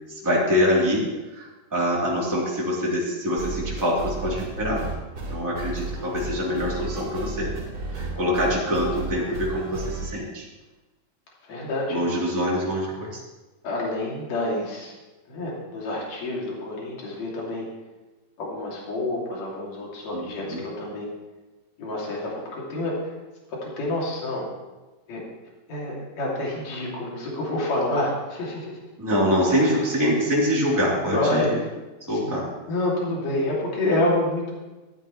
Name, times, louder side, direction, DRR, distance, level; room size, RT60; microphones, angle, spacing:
voice 1, 0.2-1.1 1.3-4.8 5.3-7.5 7.9-10.4 11.9-13.2 20.1-20.6 29.0-31.5 32.1-32.4, equal, 5° right, -6 dB, 2.9 m, -24 dB
sound 1, 3.4-10.1, right 3 dB, 50° right, 4.6 m, -33 dB
voice 2, 11.4-12.0 13.6-14.9 15.3-17.7 18.4-21.1 21.8-23.1 23.5-24.5 25.1-25.2 25.7-28.8 29.5-29.9 31.0-31.6 32.1-32.3 32.7-34.5, left 1 dB, 55° left, -3 dB, 3.8 m, -28 dB
13.5 x 13.0 x 3.2 m, 1.1 s
omnidirectional pair, 3.9 m